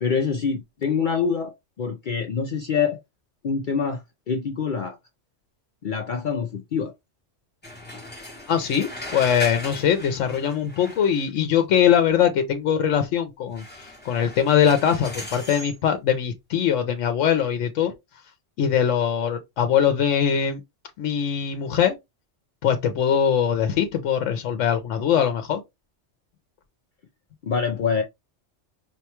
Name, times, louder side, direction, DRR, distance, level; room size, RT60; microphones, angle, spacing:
voice 1, 0.0-3.0 3.4-5.0 5.8-6.9 27.4-28.0, left 6 dB, 55° left, 0.6 m, -25 dB
sound 1, 7.6-11.4 13.6-15.8, left 1 dB, 10° left, 0.8 m, -38 dB
voice 2, 8.5-17.9 18.6-20.6 21.0-22.0 22.6-25.6, left 8 dB, 80° left, 1.0 m, -22 dB
5.3 x 2.2 x 2.8 m
omnidirectional pair, 1.3 m